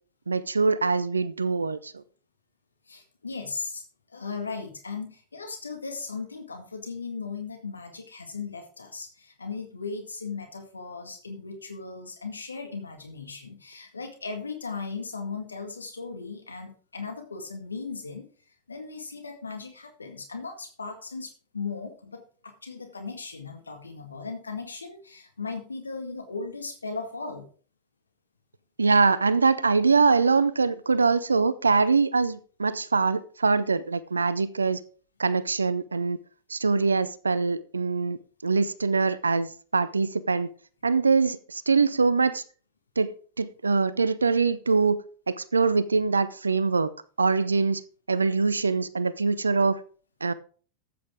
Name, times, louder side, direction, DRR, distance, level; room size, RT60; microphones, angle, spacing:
voice 1, 0.3-2.0 28.8-34.8 35.2-36.2 36.5-40.5 40.8-42.4 43.0-45.0 45.3-46.9 47.2-47.8 48.1-49.8 50.2-50.3, right 4 dB, 75° right, 0.6 m, -23 dB
voice 2, 2.9-27.4, left 4 dB, 75° left, 1.9 m, -37 dB
13.0 x 8.7 x 3.7 m
figure-of-eight pair, 90°, 0 cm